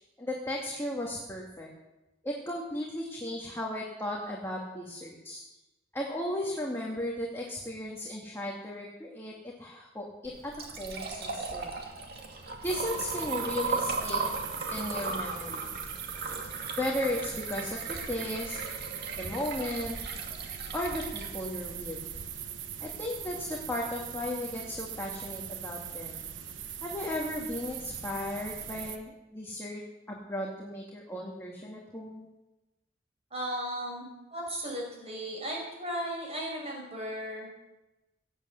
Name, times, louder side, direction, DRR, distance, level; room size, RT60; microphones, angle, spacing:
voice 1, 0.2-1.7 2.2-5.4 5.9-9.3 9.6-11.8 12.6-14.2 14.7-15.7 16.8-18.6 19.2-20.0 20.7-22.0 22.8-26.2 26.8-29.8 30.1-32.3, left 1 dB, 15° left, -2 dB, 2.0 m, -35 dB
Liquid, 10.2-22.3, right 3 dB, 55° right, 2.3 m, -37 dB
sound 1, 12.6-29.0, right 9 dB, 75° right, 1.1 m, -41 dB
voice 2, 33.3-37.5, equal, 35° right, -1 dB, 6.2 m, -36 dB
17.0 x 8.3 x 8.1 m, 1.0 s
head